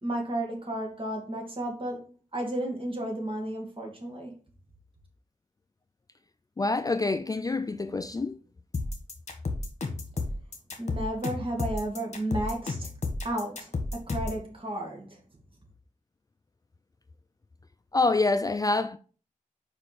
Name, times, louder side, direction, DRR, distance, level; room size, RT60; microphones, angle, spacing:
voice 1, 0.0-4.3 10.8-12.9 13.2-15.2, right 1 dB, 40° right, 2.3 m, -33 dB
voice 2, 6.6-8.4 17.9-19.0, left 3 dB, 25° left, 0.3 m, -26 dB
sound 1, 8.7-14.4, left 3 dB, 55° left, 1.3 m, -32 dB
5.1 x 4.8 x 4.2 m
wide cardioid pair, 75°, 14 cm